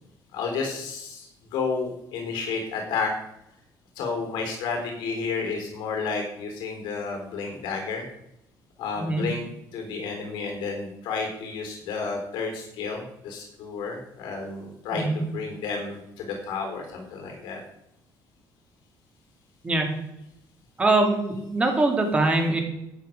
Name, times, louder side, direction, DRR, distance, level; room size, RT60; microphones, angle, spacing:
voice 1, 0.3-3.1 4.0-8.0 8.8-9.4 9.7-17.6, left 4 dB, 90° left, 3 dB, 3.7 m, -31 dB
voice 2, 19.6-20.0 20.8-22.6, right 2 dB, 15° right, 3 dB, 2.3 m, -23 dB
12.0 x 8.9 x 5.2 m, 0.81 s
cardioid pair, 170°, 8 cm